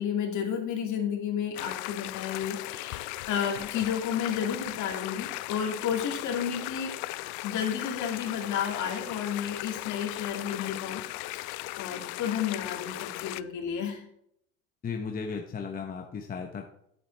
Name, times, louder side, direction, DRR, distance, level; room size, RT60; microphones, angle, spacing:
voice 1, 0.0-7.0 7.4-14.0, left 8 dB, 55° left, 2 dB, 2.5 m, -32 dB
sound 1, 1.5-13.4, left 19 dB, 80° left, 0.5 m, -37 dB
voice 2, 14.8-16.7, left 5 dB, 25° left, 2 dB, 0.9 m, -35 dB
10.5 x 8.3 x 3.3 m, 0.71 s
cardioid pair, 125°, 36 cm